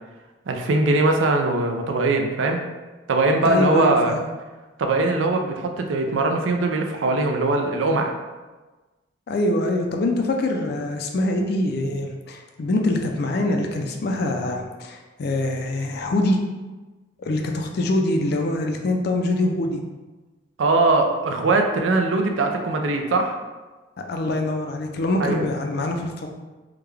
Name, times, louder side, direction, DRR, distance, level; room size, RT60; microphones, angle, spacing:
voice 1, 0.5-2.6 3.1-4.1 4.8-8.1 20.6-23.4 25.2-25.4, right 2 dB, 85° right, 3 dB, 0.4 m, -21 dB
voice 2, 3.4-4.2 9.3-16.4 17.2-19.8 24.0-26.3, left 2 dB, 55° left, 3 dB, 0.4 m, -24 dB
3.6 x 2.2 x 3.2 m, 1.2 s
head